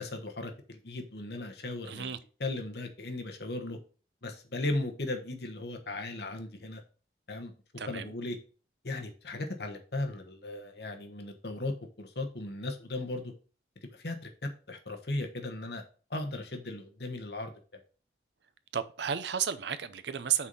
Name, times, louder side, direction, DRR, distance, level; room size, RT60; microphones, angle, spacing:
voice 1, 0.0-2.1 2.4-3.8 4.2-6.8 7.3-7.5 7.9-8.4 8.8-13.3 13.8-15.8 16.1-17.5, left 2 dB, 65° left, 1.2 m, -37 dB
voice 2, 1.9-2.2 7.8-8.1 18.7-20.5, right 8 dB, 70° right, 0.6 m, -32 dB
6.0 x 4.1 x 5.4 m
head